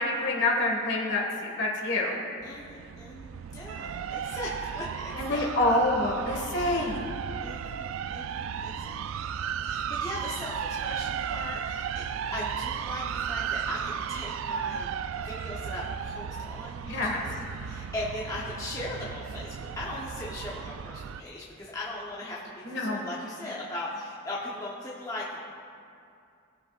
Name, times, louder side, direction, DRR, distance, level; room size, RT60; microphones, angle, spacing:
voice 1, 0.0-2.2 5.1-7.1 16.9-17.3 22.6-23.0, left 1 dB, 55° left, -2 dB, 1.8 m, -27 dB
voice 2, 2.4-5.8 7.4-9.4 9.6-12.1 12.3-14.9 15.2-22.4 22.6-25.4, left 2 dB, 15° left, -6 dB, 0.9 m, -39 dB
sound 1, 2.4-21.2, right 7 dB, 70° right, 0.3 m, -35 dB
18.0 x 7.8 x 2.5 m, 2.5 s
head